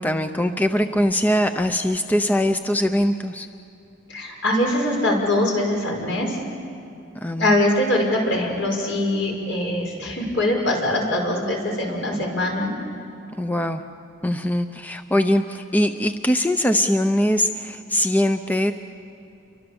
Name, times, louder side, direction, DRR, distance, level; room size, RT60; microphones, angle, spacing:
voice 1, 0.0-3.5 7.2-7.6 13.4-13.8 14.2-18.7, left 1 dB, 10° left, 7 dB, 0.6 m, -22 dB
voice 2, 4.1-6.4 7.4-12.7, left 1 dB, 70° left, 0 dB, 6.0 m, -22 dB
29.5 x 24.0 x 7.1 m, 2.8 s
head